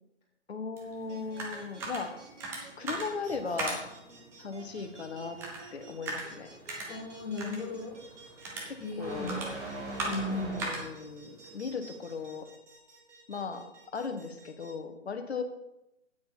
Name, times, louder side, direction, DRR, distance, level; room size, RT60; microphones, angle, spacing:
voice 1, 0.5-2.1 2.8-3.8 4.4-5.4 5.7-6.5 8.6-9.4 10.3-12.5 13.3-13.6 13.9-15.4, left 5 dB, 60° left, 6 dB, 1.4 m, -37 dB
sound 1, 0.8-12.4, right 2 dB, 5° right, 0.8 m, -41 dB
sound 2, 1.1-14.7, right 4 dB, 70° right, 2.6 m, -52 dB
sound 3, 4.6-11.0, right 1 dB, 25° right, 3.6 m, -44 dB
voice 2, 6.9-7.9 8.8-9.3 10.0-10.6, left 2 dB, 25° left, -13 dB, 3.9 m, -35 dB
9.0 x 8.5 x 4.1 m, 0.89 s
figure-of-eight pair, 135°, 37 cm